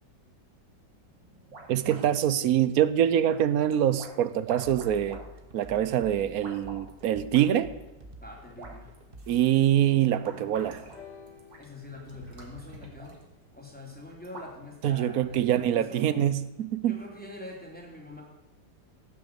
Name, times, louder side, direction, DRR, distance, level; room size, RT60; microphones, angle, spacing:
sound 1, 1.1-15.7, right 2 dB, 85° right, 3.1 m, -50 dB
voice 1, 1.7-5.2 5.5-7.7 9.3-10.8 14.8-17.0, right 11 dB, 65° right, 1.0 m, -24 dB
sound 2, 4.6-9.5, right 1 dB, 35° right, 1.4 m, -47 dB
voice 2, 8.2-8.9 11.6-13.2 13.5-16.0 16.9-18.2, left 2 dB, 5° left, 3.3 m, -44 dB
sound 3, 10.9-14.7 15.7-15.8, left 7 dB, 80° left, 7.6 m, -54 dB
17.5 x 6.6 x 8.2 m
omnidirectional pair, 1.9 m